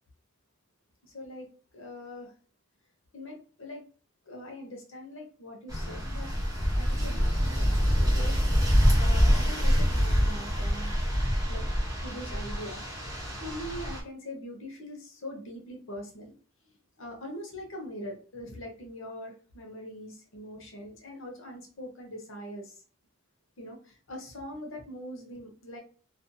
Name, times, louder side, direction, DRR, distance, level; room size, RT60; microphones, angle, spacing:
voice 1, 1.0-1.5 1.7-2.3 3.1-3.8 4.3-6.3 6.7-10.9 11.5-11.6 12.0-12.8 13.4-16.3 17.0-22.8 23.6-25.8, left 1 dB, 75° left, 1 dB, 0.8 m, -42 dB
sound 1, 5.7-14.0, equal, 20° right, 0.9 m, -25 dB
2.5 x 2.2 x 2.7 m, 0.40 s
head